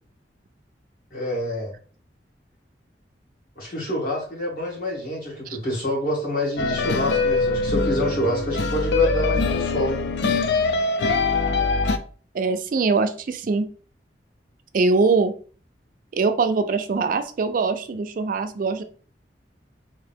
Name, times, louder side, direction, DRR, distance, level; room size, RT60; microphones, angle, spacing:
voice 1, 1.1-1.7 3.6-10.1, equal, 55° left, -4 dB, 1.9 m, -27 dB
sound 1, 6.6-12.0, left 3 dB, 75° left, 0.4 m, -23 dB
voice 2, 12.3-13.7 14.7-15.3 16.1-18.8, right 4 dB, 50° right, 9 dB, 0.4 m, -22 dB
3.7 x 2.8 x 3.4 m, 0.41 s
head